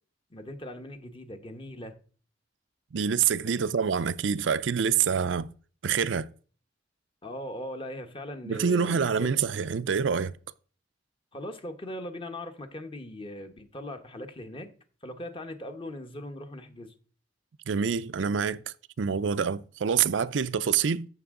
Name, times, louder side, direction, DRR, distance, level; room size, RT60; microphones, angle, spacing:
voice 1, 0.3-1.9 7.2-9.3 11.3-14.7 15.0-16.9, left 1 dB, 30° left, 1.1 m, -39 dB
voice 2, 2.9-5.5 5.8-6.3 8.4-10.4 17.7-21.1, right 6 dB, 80° right, 0.5 m, -26 dB
14.0 x 6.1 x 3.7 m
head